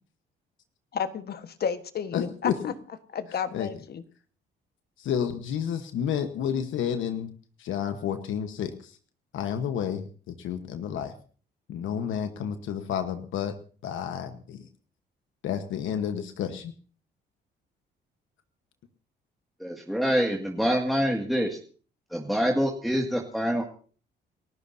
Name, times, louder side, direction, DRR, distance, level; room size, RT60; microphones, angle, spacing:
voice 1, 0.9-2.7 3.1-4.0, left 7 dB, 55° left, 10 dB, 1.4 m, -32 dB
voice 2, 2.1-2.5 3.5-3.7 5.0-7.3 7.6-8.7 9.3-10.0 10.4-11.1 11.7-13.5 13.8-14.6 15.4-16.7, left 8 dB, 80° left, 8 dB, 1.2 m, -30 dB
voice 3, 19.6-21.6 22.1-23.6, equal, ahead, -1 dB, 2.1 m, -26 dB
29.0 x 14.0 x 2.8 m, 0.41 s
cardioid pair, 90°, 20 cm